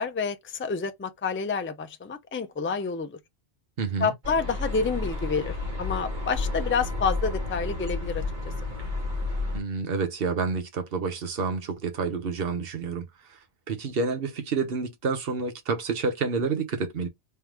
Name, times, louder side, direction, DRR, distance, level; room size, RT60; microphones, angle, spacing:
voice 1, 0.0-3.2 4.0-8.2, left 5 dB, 20° left, 0.3 m, -29 dB
voice 2, 3.8-4.1 9.5-13.4 13.7-17.1, right 4 dB, 65° right, 1.2 m, -29 dB
sound 1, 4.2-9.6, left 2 dB, 45° right, 1.6 m, -31 dB
3.4 x 3.4 x 3.0 m
omnidirectional pair, 1.1 m